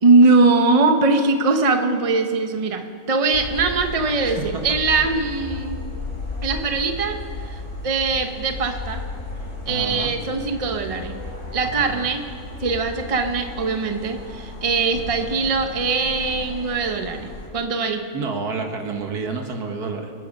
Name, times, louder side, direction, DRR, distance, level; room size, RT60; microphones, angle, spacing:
voice 1, 0.0-4.4 4.6-5.8 6.4-7.2 7.4-9.0 9.7-11.1 11.5-12.2 12.6-17.3 17.5-18.0, right 3 dB, 25° right, 5 dB, 1.0 m, -21 dB
sound 1, 3.3-17.5, left 2 dB, 50° left, 3.8 m, -34 dB
voice 2, 4.2-4.6 9.7-10.1 11.6-12.1 18.1-20.1, right 4 dB, 90° right, 3 dB, 2.2 m, -29 dB
25.5 x 10.5 x 5.3 m, 2.1 s
omnidirectional pair, 1.6 m